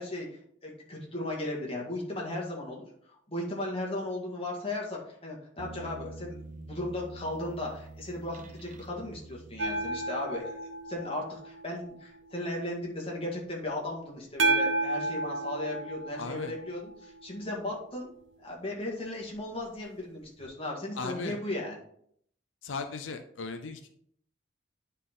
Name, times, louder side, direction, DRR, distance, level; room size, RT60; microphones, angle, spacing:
voice 1, 0.0-10.6 10.9-18.1 18.4-21.8, left 1 dB, 30° left, -2 dB, 2.0 m, -36 dB
sound 1, 5.6-10.5, right 2 dB, 40° right, 0.7 m, -46 dB
sound 2, 9.6-12.4 14.4-17.6 20.4-20.5, right 2 dB, 85° right, 1.0 m, -32 dB
voice 2, 16.2-16.5 21.0-21.3 22.6-23.8, left 4 dB, 90° left, 7 dB, 0.6 m, -37 dB
10.0 x 4.1 x 3.8 m, 0.65 s
head